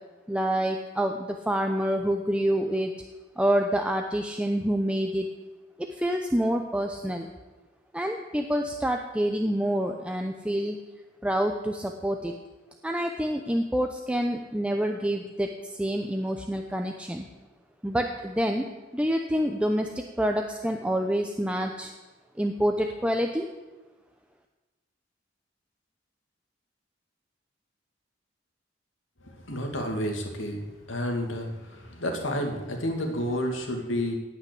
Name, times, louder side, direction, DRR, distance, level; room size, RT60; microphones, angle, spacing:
voice 1, 0.3-2.9 3.4-5.3 5.8-7.3 7.9-10.8 11.2-12.3 12.8-17.2 17.8-18.6 18.9-21.9 22.4-23.5, equal, 5° right, 3 dB, 0.7 m, -27 dB
voice 2, 29.2-34.1, equal, 90° left, 3 dB, 2.4 m, -30 dB
17.5 x 5.9 x 8.4 m, 1.2 s
head